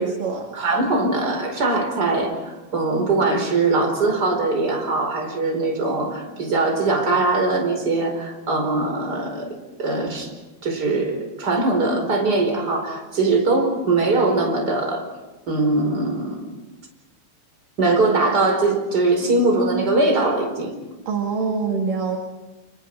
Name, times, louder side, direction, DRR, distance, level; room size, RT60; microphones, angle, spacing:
voice 1, 0.0-0.5 21.1-22.2, right 5 dB, 55° right, 1 dB, 3.4 m, -25 dB
voice 2, 0.5-9.5 9.8-10.3 10.6-15.0 15.5-16.5 17.8-20.7, right 3 dB, 20° right, 3 dB, 5.0 m, -21 dB
29.0 x 27.5 x 4.8 m, 1.1 s
omnidirectional pair, 5.2 m